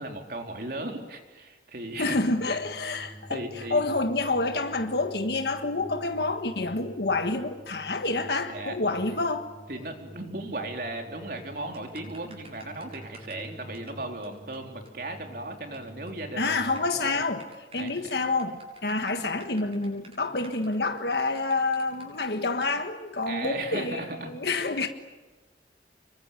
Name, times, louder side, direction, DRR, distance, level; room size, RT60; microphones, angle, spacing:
voice 1, 0.0-2.2 2.5-2.6 3.3-3.8 8.5-8.8 9.1-9.2 9.7-16.5 16.8-17.1 17.8-18.0 23.3-24.3, right 2 dB, 55° right, 3.8 m, -36 dB
voice 2, 2.0-9.5 16.4-17.4 17.7-24.9, left 3 dB, 65° left, 1.5 m, -28 dB
sound 1, 2.1-16.9, equal, 20° left, 7.2 m, -48 dB
sound 2, 11.7-13.5 13.7-13.9 14.2-14.3 14.5-14.6 14.9-15.0 15.2-15.8 16.1-16.2 16.6-22.1 22.6-22.7, right 3 dB, 35° right, 7.2 m, -51 dB
27.0 x 23.0 x 9.1 m
head